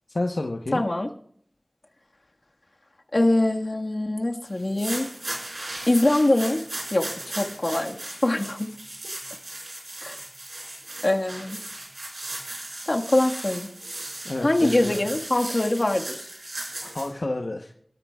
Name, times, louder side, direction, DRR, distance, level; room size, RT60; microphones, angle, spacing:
voice 1, 0.1-0.8 14.2-15.0 16.8-17.7, left 2 dB, 70° left, 2 dB, 1.0 m, -30 dB
voice 2, 0.7-1.1 3.1-5.1 5.9-6.6 6.9-8.7 10.0-10.2 11.0-11.6 12.9-13.7 14.4-16.3, left 1 dB, 55° left, 2 dB, 1.6 m, -23 dB
sound 1, 4.6-17.1, right 1 dB, 70° right, 5.2 m, -37 dB
28.0 x 13.0 x 2.4 m, 0.62 s
wide cardioid pair, 50°, 0 cm